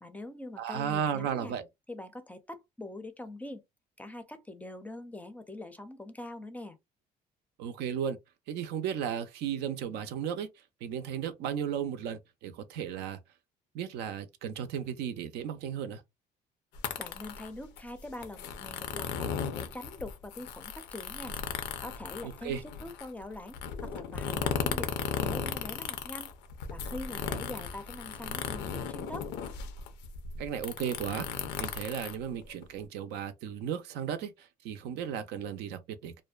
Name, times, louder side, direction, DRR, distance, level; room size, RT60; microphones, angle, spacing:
voice 1, 0.0-1.5 1.9-3.6 4.0-6.8 17.0-19.3 19.5-21.4 21.8-26.3 26.7-29.3, left 1 dB, 10° left, 0.4 m, -43 dB
voice 2, 0.6-1.6 7.6-8.2 8.5-10.5 10.8-13.2 13.7-16.0 22.2-22.6 30.4-36.2, right 8 dB, 85° right, 0.5 m, -35 dB
sound 1, 16.8-32.8, left 7 dB, 85° left, 0.5 m, -36 dB
2.5 x 2.1 x 2.3 m
cardioid pair, 110°, 17 cm